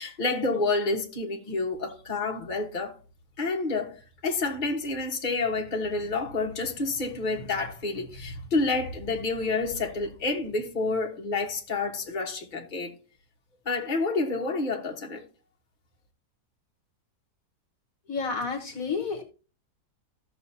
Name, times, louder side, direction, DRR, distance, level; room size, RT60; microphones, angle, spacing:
voice 1, 0.0-2.9 3.4-12.9 13.6-15.2, left 3 dB, 30° left, 1.5 m, -29 dB
voice 2, 18.1-19.2, left 4 dB, 60° left, 1.5 m, -30 dB
15.0 x 6.3 x 2.8 m
omnidirectional pair, 1.8 m